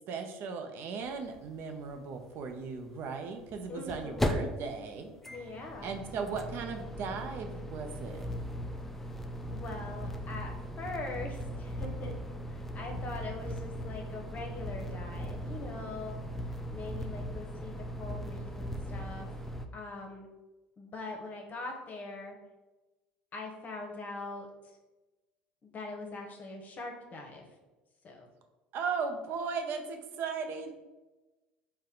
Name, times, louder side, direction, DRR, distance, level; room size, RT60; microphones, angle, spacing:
voice 1, 0.1-5.1 5.8-8.3 28.7-30.7, right 5 dB, 55° right, 6 dB, 0.5 m, -37 dB
sound 1, 1.1-1.2 1.4-1.5 3.4-19.7, equal, 5° left, 0.4 m, -38 dB
voice 2, 3.7-4.3 5.3-5.9 9.5-12.2 12.5-16.3 16.7-19.3 19.7-20.3 20.8-22.4 23.3-24.8 25.6-27.5 28.0-28.3, left 2 dB, 35° left, 1 dB, 0.8 m, -42 dB
4.1 x 2.2 x 3.7 m, 1.1 s
hypercardioid pair, 70°, 5 cm